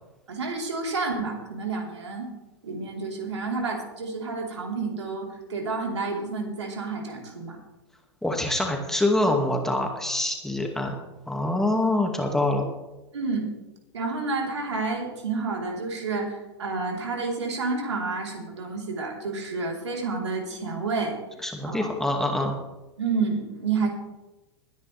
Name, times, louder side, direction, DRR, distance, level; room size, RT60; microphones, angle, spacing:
voice 1, 0.3-2.3 2.6-7.6 13.1-13.5 13.9-21.2 21.6-21.9 23.0-23.9, right 4 dB, 80° right, 0 dB, 4.1 m, -30 dB
voice 2, 8.2-10.9 11.3-12.7 21.4-22.5, left 1 dB, 5° left, 2 dB, 2.2 m, -25 dB
21.5 x 10.0 x 3.5 m, 1.0 s
hypercardioid pair, 100°, 15 cm